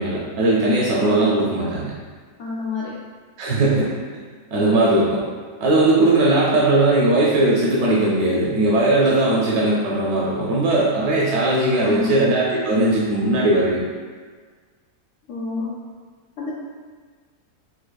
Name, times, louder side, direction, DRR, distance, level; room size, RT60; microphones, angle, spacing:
voice 1, 0.0-1.9 3.4-3.9 4.5-5.2 5.6-13.8, right 2 dB, 75° right, -6 dB, 1.1 m, -18 dB
voice 2, 1.0-1.4 2.4-3.0 11.6-12.1 15.3-15.8 16.4-16.5, left 4 dB, 75° left, -7 dB, 0.6 m, -28 dB
4.2 x 2.6 x 2.2 m, 1.6 s
omnidirectional pair, 1.7 m